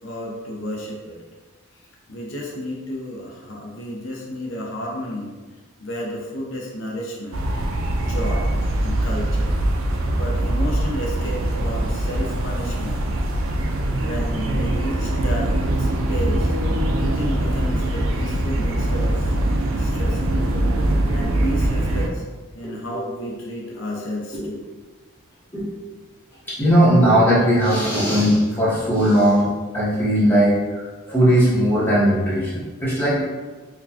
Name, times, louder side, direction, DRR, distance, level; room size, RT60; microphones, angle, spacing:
voice 1, 0.0-1.2 2.1-5.4 5.8-7.4 8.0-8.5 8.8-9.5 10.1-13.0 14.0-16.6 16.9-20.5 21.1-22.2 22.5-24.7, equal, 65° left, -2 dB, 0.6 m, -32 dB
sound 1, 7.3-22.1, right 1 dB, 75° right, 0.4 m, -22 dB
voice 2, 22.6-23.0 24.3-24.5 25.5-25.7 26.5-30.8 31.1-33.2, equal, 10° left, -9 dB, 0.9 m, -18 dB
4.1 x 2.2 x 2.8 m, 1.3 s
head